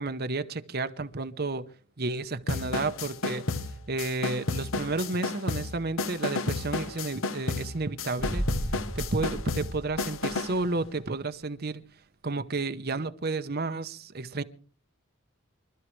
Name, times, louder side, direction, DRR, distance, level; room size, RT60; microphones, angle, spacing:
voice 1, 0.0-1.7 2.0-3.5 3.9-8.5 8.9-11.8 12.2-14.4, right 3 dB, 45° right, 0.9 m, -31 dB
sound 1, 2.5-10.6, left 3 dB, 70° left, 1.2 m, -32 dB
sound 2, 8.2-10.9 11.2-11.3, equal, ahead, 0.7 m, -35 dB
27.5 x 12.5 x 3.2 m
head